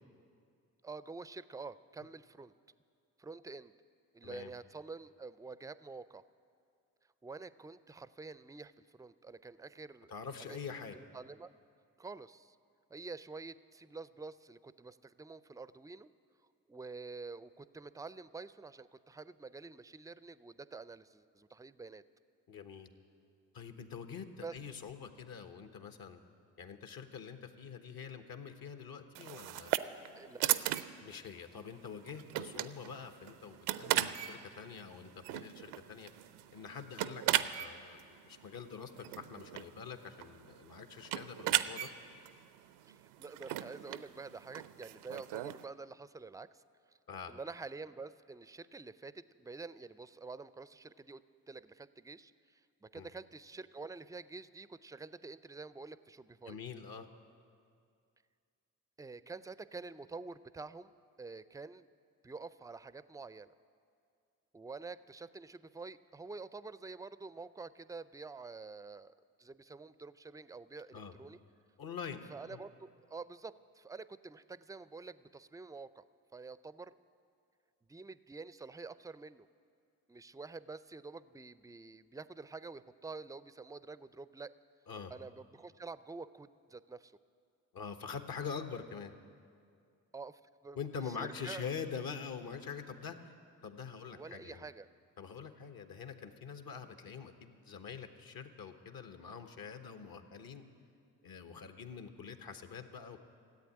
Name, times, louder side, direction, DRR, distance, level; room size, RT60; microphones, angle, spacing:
voice 1, 0.8-2.5 3.2-3.7 4.1-6.2 7.2-10.1 10.9-11.5 12.0-12.6 12.9-16.1 16.7-22.0 24.4-24.6 30.2-30.5 42.9-46.6 46.9-47.0 47.3-56.6 59.0-60.9 61.2-61.9 62.2-63.5 64.5-71.4 72.3-76.0 76.3-76.9 77.9-79.5 80.1-84.5 85.1-87.2 90.1-90.8 91.1-91.6 94.1-94.9, right 4 dB, 10° right, 16 dB, 0.4 m, -48 dB
voice 2, 4.2-4.5 10.1-11.0 22.5-22.9 23.5-26.2 26.6-29.7 31.0-36.1 36.5-41.9 47.1-47.3 52.9-53.1 56.5-57.1 70.9-71.1 71.8-72.2 72.5-72.6 84.9-85.1 87.7-89.1 90.7-93.2 93.6-94.6 95.2-100.6 101.2-103.2, left 6 dB, 60° left, 8 dB, 1.3 m, -45 dB
sound 1, 29.1-45.6, right 14 dB, 75° right, 0.6 m, -38 dB
14.5 x 8.4 x 9.8 m, 2.3 s
hypercardioid pair, 45°, 41 cm